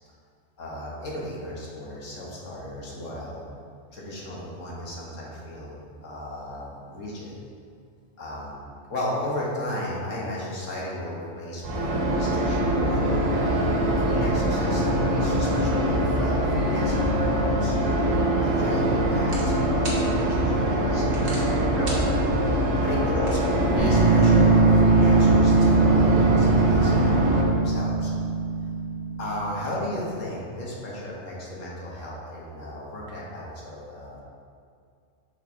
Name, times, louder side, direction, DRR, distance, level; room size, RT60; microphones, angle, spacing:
voice 1, 0.6-3.4 3.9-7.4 8.2-8.6 8.9-17.7 18.4-22.0 22.4-22.6 22.8-28.1 29.2-34.2, left 1 dB, 75° left, -5 dB, 1.7 m, -35 dB
sound 1, 11.6-27.4, right 1 dB, 80° right, 1.3 m, -23 dB
sound 2, 18.0-24.1, right 1 dB, 60° right, 1.6 m, -41 dB
sound 3, 23.8-29.8, right 3 dB, 5° right, 1.6 m, -21 dB
6.1 x 5.4 x 4.0 m, 2.3 s
omnidirectional pair, 1.3 m